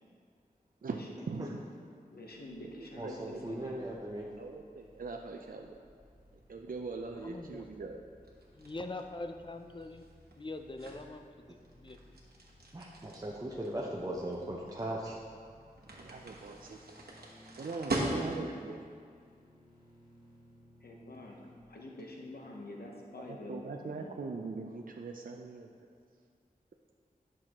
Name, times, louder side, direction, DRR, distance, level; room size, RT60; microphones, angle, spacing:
voice 1, 0.8-1.7 2.6-3.6 4.4-5.8 6.5-8.0 16.0-16.8 17.6-18.9 23.3-25.7, right 4 dB, 65° right, 2 dB, 0.5 m, -41 dB
voice 2, 2.1-3.8 20.8-21.4 21.7-24.1, left 1 dB, 90° left, -1 dB, 0.9 m, -47 dB
sound 1, 2.2-21.6, equal, 65° left, 2.0 m, -61 dB
voice 3, 3.0-4.3 12.7-15.2, right 1 dB, 25° right, -3 dB, 0.7 m, -38 dB
voice 4, 7.1-7.7 8.5-12.2, left 2 dB, 30° left, 6 dB, 0.5 m, -44 dB
sound 2, 8.2-18.7, right 1 dB, 85° right, 1.1 m, -41 dB
10.5 x 6.1 x 3.0 m, 2.2 s
wide cardioid pair, 50°, 16 cm